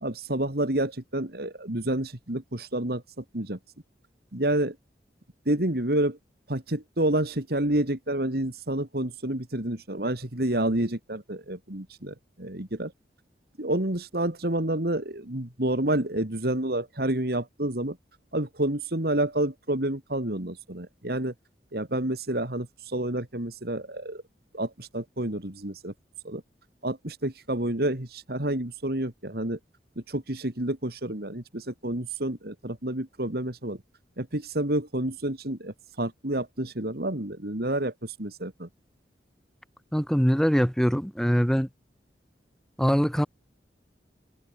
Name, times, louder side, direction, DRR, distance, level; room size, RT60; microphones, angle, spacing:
voice 1, 0.0-3.6 4.3-4.7 5.5-6.2 6.5-12.9 13.6-18.0 18.3-21.3 21.7-24.2 24.5-25.9 26.2-26.4 26.8-29.6 30.1-33.8 34.2-38.7, right 1 dB, 60° right, 2.8 m, -29 dB
voice 2, 39.9-41.7 42.8-43.3, equal, 5° left, 2.4 m, -23 dB
head